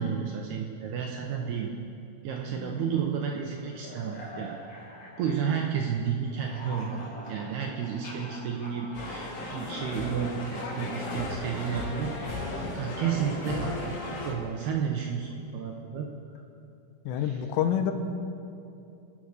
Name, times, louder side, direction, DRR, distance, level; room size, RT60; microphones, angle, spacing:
voice 1, 0.0-1.7 2.2-4.6 5.2-7.0 7.3-12.4 12.7-13.9 14.2-16.1 17.2-17.4, right 7 dB, 80° right, 1 dB, 2.4 m, -31 dB
sound 1, 2.5-6.0 6.2-10.3, equal, 40° left, 1.6 m, -45 dB
sound 2, 8.9-14.3, left 2 dB, 60° left, 3.8 m, -35 dB
voice 2, 17.1-17.9, left 9 dB, 90° left, 7 dB, 3.4 m, -27 dB
25.0 x 8.7 x 6.5 m, 2.8 s
omnidirectional pair, 5.6 m